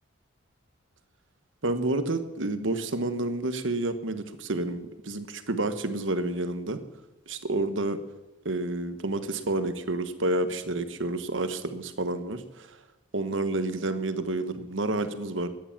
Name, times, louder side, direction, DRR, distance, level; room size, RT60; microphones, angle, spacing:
voice 1, 1.6-6.8 7.3-8.0 8.4-12.8 13.1-15.5, right 2 dB, 65° right, 10 dB, 1.3 m, -29 dB
13.5 x 10.0 x 7.2 m, 1.0 s
head